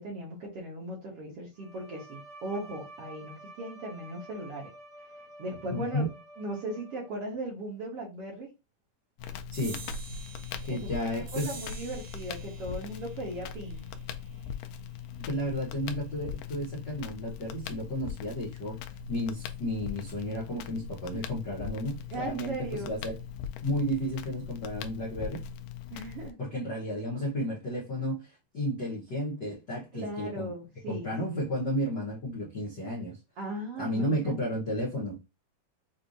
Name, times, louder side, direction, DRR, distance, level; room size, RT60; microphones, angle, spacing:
voice 1, 0.0-4.7 5.4-6.1 6.4-8.5 10.7-13.8 22.1-22.9 25.9-26.4 29.9-31.5 33.4-34.3, right 1 dB, 55° right, 1.9 m, -38 dB
Bowed string instrument, 1.6-7.4, right 1 dB, 30° right, 1.3 m, -50 dB
voice 2, 5.7-6.1 9.5-9.8 10.6-11.5 15.3-18.8 19.1-23.1 23.6-25.4 26.4-30.5 30.9-33.2 33.8-35.2, equal, 65° left, 1.1 m, -32 dB
Crackle, 9.2-26.3, left 7 dB, 80° left, 2.1 m, -40 dB
sound 1, 9.5-16.4, right 4 dB, 75° right, 3.1 m, -49 dB
6.5 x 2.5 x 2.7 m
omnidirectional pair, 4.0 m